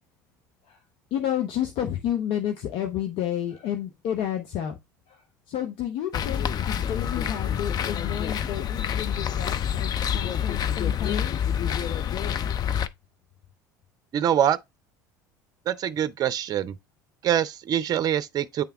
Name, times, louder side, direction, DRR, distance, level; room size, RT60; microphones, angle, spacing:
voice 1, 1.1-4.8 5.5-11.5 12.6-12.8, left 10 dB, 60° left, 0.9 m, -31 dB
sound 1, 6.1-12.9, left 9 dB, 40° left, 0.5 m, -27 dB
voice 2, 14.1-14.6 15.7-16.8 17.2-18.6, right 10 dB, 40° right, 0.5 m, -24 dB
8.9 x 3.4 x 3.4 m
hypercardioid pair, 70°, 10 cm